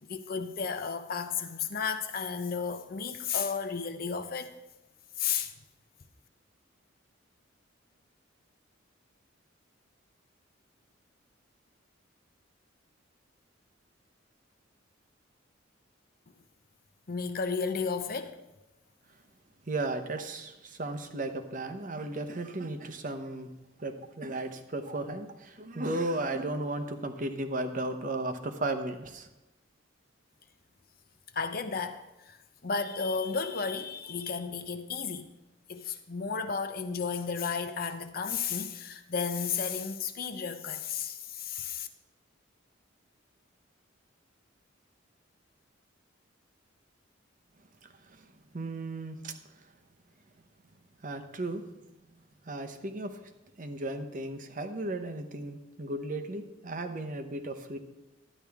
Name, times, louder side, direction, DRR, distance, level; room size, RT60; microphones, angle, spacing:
voice 1, 0.0-4.5 5.2-5.5 17.1-18.4 31.3-32.4 32.6-35.2 35.7-41.9, left 5 dB, 50° left, 0.7 m, -33 dB
voice 2, 19.7-23.5 23.8-29.3 48.1-48.3 48.5-49.3 51.0-51.6 52.4-53.2 53.6-57.8, right 2 dB, 40° right, 0.9 m, -35 dB
12.0 x 10.0 x 3.5 m
head